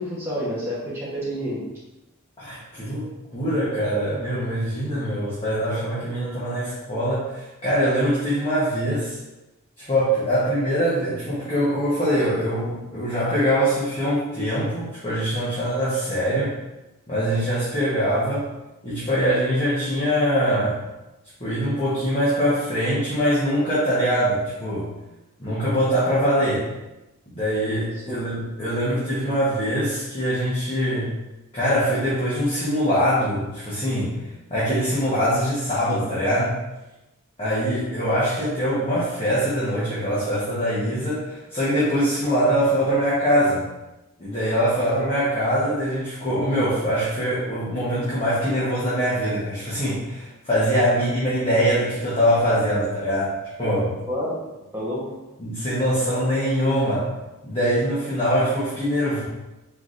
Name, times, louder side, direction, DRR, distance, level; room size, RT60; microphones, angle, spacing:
voice 1, 0.0-1.6 28.0-28.1 54.1-54.3 54.7-55.1, equal, 10° right, -9 dB, 1.1 m, -28 dB
voice 2, 2.4-9.2 9.8-16.5 17.1-18.5 18.8-20.8 21.4-24.9 25.4-26.7 27.3-31.1 31.5-34.2 34.5-36.6 37.4-43.7 44.2-53.9 55.4-57.1 57.4-59.2, equal, 25° left, -10 dB, 1.0 m, -23 dB
4.6 x 3.8 x 2.5 m, 1.0 s
head